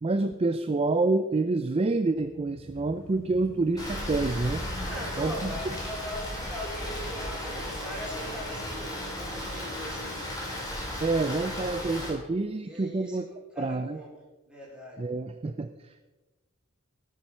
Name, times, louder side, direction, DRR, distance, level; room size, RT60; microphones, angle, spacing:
voice 1, 0.0-4.6 5.2-5.6 11.0-13.3 13.6-14.0 15.0-16.1, right 3 dB, 25° right, 10 dB, 0.4 m, -28 dB
sound 1, 2.1-11.0, left 1 dB, 80° right, 3.1 m, -47 dB
Rain, 3.8-12.1, left 1 dB, 15° left, 3.4 m, -35 dB
voice 2, 4.7-10.2 12.6-13.2 13.5-14.1 14.4-15.0, equal, 5° right, -5 dB, 4.1 m, -40 dB
15.5 x 7.5 x 5.6 m, 1.2 s
head